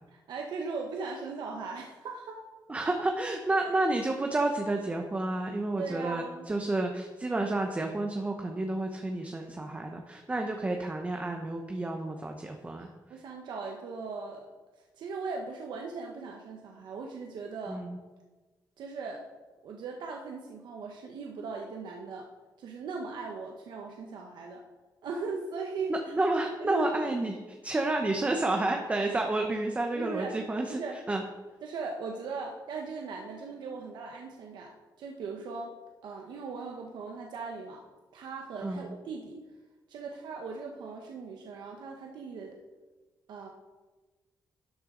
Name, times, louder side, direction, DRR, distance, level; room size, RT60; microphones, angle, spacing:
voice 1, 0.1-2.4 2.8-2.9 5.8-6.5 12.8-14.5 14.8-17.8 18.8-19.2 19.6-22.3 22.6-24.6 25.0-26.1 26.6-26.9 29.9-30.4 30.7-31.0 31.6-34.7 35.0-35.7 36.0-37.8 38.1-39.4 39.9-42.6 43.3-43.5, right 4 dB, 80° right, 1 dB, 1.0 m, -38 dB
voice 2, 2.7-12.9 17.7-18.0 25.9-30.8 31.1-31.2 38.6-38.9, right 2 dB, 20° right, 3 dB, 0.8 m, -30 dB
12.5 x 8.1 x 3.8 m, 1.3 s
cardioid pair, 130°, 8 cm